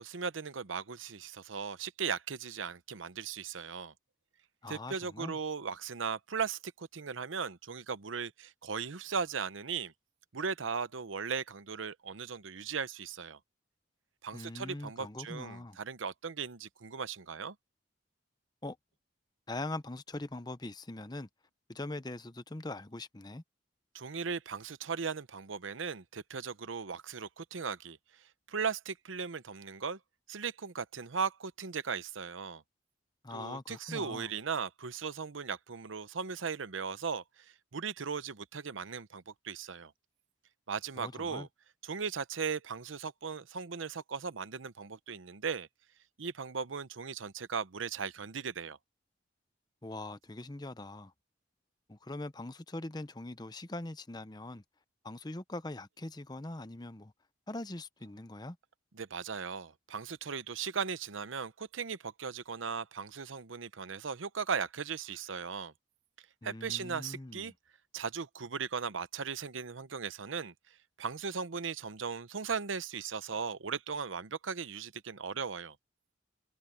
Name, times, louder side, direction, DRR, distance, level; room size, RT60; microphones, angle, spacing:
voice 1, 0.0-3.9 4.7-9.9 10.3-13.4 14.2-17.6 23.9-30.0 30.3-32.6 33.3-39.9 40.7-41.5 41.8-45.7 46.2-48.8 58.9-65.7 66.4-67.5 67.9-70.5 71.0-75.8, right 6 dB, 85° right, 0.8 m, -37 dB
voice 2, 4.6-5.4 14.3-15.8 18.6-18.8 19.5-21.3 21.7-23.4 33.2-34.3 41.0-41.5 49.8-51.1 51.9-54.6 55.0-57.1 57.5-58.6 66.4-67.5, left 2 dB, 20° left, 0.8 m, -42 dB
head